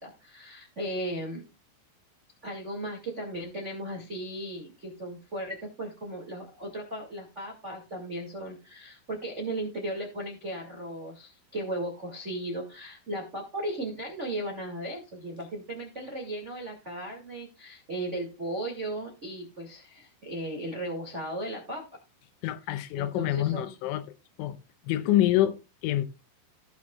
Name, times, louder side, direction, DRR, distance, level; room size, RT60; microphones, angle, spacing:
voice 1, 0.0-1.4 2.4-21.8 22.9-23.7, right 1 dB, 90° right, 0.6 m, -36 dB
voice 2, 22.4-24.0 24.4-24.6 24.9-26.1, left 13 dB, 85° left, 3.1 m, -26 dB
18.5 x 6.2 x 2.3 m
omnidirectional pair, 5.4 m